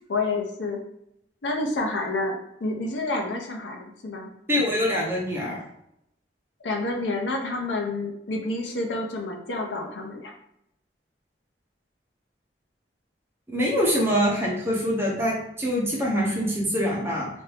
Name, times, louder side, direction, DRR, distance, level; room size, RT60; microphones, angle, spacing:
voice 1, 0.1-0.8 1.4-4.3 6.6-10.3, left 2 dB, 85° left, 1 dB, 0.6 m, -29 dB
voice 2, 4.5-5.6 13.5-17.3, equal, 15° right, -4 dB, 0.7 m, -24 dB
2.7 x 2.5 x 3.3 m, 0.78 s
head